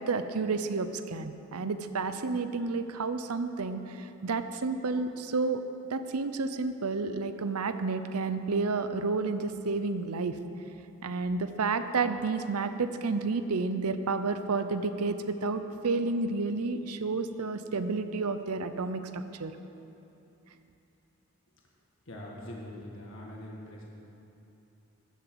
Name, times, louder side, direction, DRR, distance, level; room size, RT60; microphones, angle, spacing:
voice 1, 0.0-5.6 5.9-10.4 11.0-19.5, right 4 dB, 85° right, 10 dB, 0.7 m, -31 dB
voice 2, 22.1-23.8, left 1 dB, 60° left, -3 dB, 1.7 m, -43 dB
13.0 x 6.8 x 8.0 m, 2.9 s
head